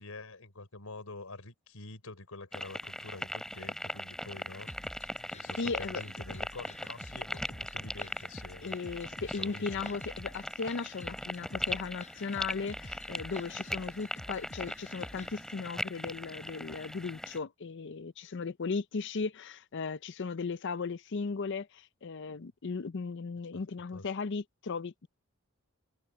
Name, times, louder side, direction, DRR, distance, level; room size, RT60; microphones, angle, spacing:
voice 1, 0.0-4.7 5.2-9.9 23.5-23.6 23.9-24.1, left 2 dB, 80° left, 4.0 m, -47 dB
sound 1, 2.5-17.4, equal, 5° left, 3.1 m, -40 dB
sound 2, 4.7-15.3, left 1 dB, 30° left, 7.4 m, -50 dB
voice 2, 5.6-6.0 8.6-25.1, left 4 dB, 55° left, 0.5 m, -37 dB
head